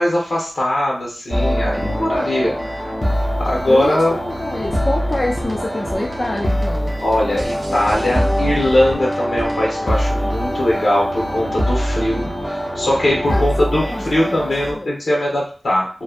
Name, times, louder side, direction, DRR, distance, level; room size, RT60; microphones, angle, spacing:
voice 1, 0.0-2.8 3.4-4.1 7.0-12.2 12.7-15.9, left 1 dB, 80° left, -3 dB, 1.2 m, -20 dB
sound 1, 1.3-14.7, equal, 25° left, 0.9 m, -23 dB
voice 2, 3.7-6.9 13.3-14.4 14.7-15.0, left 1 dB, 40° left, 0 dB, 0.4 m, -26 dB
sound 2, 4.6-9.8, right 1 dB, 50° right, 0.4 m, -34 dB
3.1 x 2.3 x 2.5 m, 0.40 s
wide cardioid pair, 70°, 0 cm